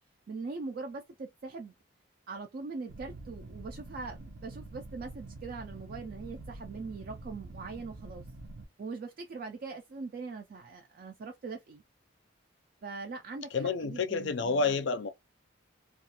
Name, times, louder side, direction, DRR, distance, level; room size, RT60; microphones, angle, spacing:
voice 1, 0.3-1.7 2.3-8.2 8.8-11.8 12.8-14.8, right 4 dB, 50° right, 0.3 m, -41 dB
sound 1, 2.9-8.7, right 2 dB, 85° right, 0.6 m, -46 dB
voice 2, 13.5-15.1, left 4 dB, 65° left, 0.4 m, -29 dB
2.3 x 2.3 x 2.7 m
head